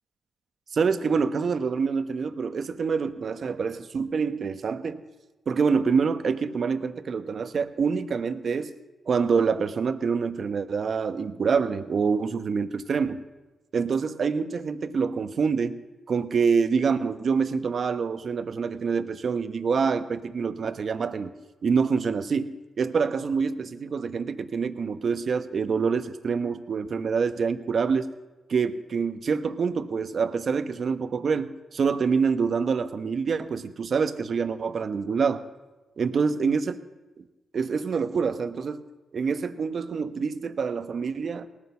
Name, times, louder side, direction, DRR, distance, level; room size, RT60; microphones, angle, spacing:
voice 1, 0.7-5.0 5.5-8.7 9.1-13.2 13.7-21.3 21.6-28.1 28.5-35.4 36.0-36.6 37.2-37.3 37.5-38.9 39.1-41.5, right 5 dB, 60° right, 10 dB, 1.1 m, -26 dB
18.5 x 9.8 x 7.0 m, 1.1 s
cardioid pair, 65°, 0 cm